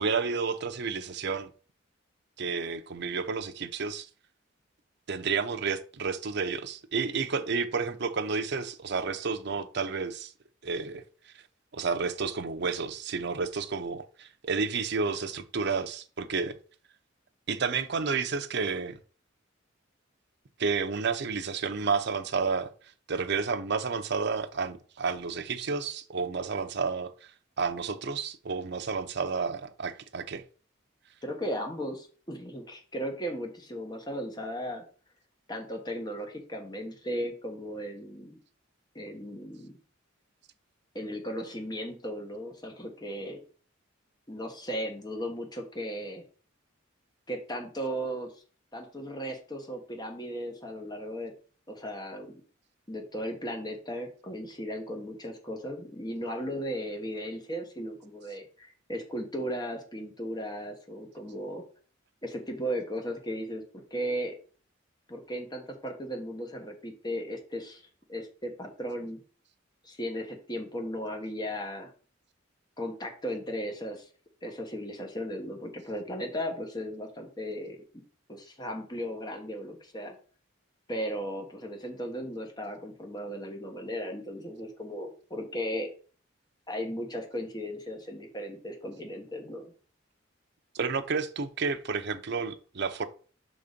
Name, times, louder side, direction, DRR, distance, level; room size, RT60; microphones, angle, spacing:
voice 1, 0.0-1.5 2.4-4.1 5.1-10.3 10.6-11.0 11.7-16.5 17.5-19.0 20.6-22.7 23.1-27.1 27.6-30.4 90.7-93.0, right 5 dB, 55° right, 0.6 m, -31 dB
voice 2, 31.2-34.8 35.5-38.4 38.9-39.8 40.9-43.4 44.3-46.2 47.3-48.3 48.7-51.3 51.7-52.3 52.9-61.6 62.2-64.3 65.1-67.8 68.1-69.2 69.8-71.9 72.8-74.1 74.4-78.0 78.3-80.2 80.9-85.9 86.7-89.7, equal, 20° left, 1.3 m, -36 dB
5.8 x 4.1 x 5.1 m
head